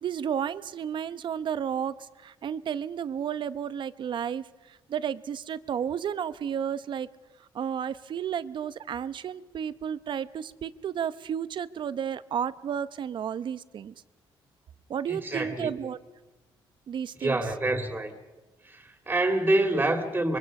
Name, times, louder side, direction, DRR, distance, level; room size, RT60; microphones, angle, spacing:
voice 1, 0.0-7.1 7.4-13.9 14.9-16.0 16.9-17.4, right 8 dB, 60° right, 0.9 m, -32 dB
voice 2, 15.1-15.7 17.2-18.1 18.6-20.4, right 2 dB, 20° right, 2.7 m, -26 dB
26.0 x 23.0 x 5.4 m
cardioid pair, 80°, 9 cm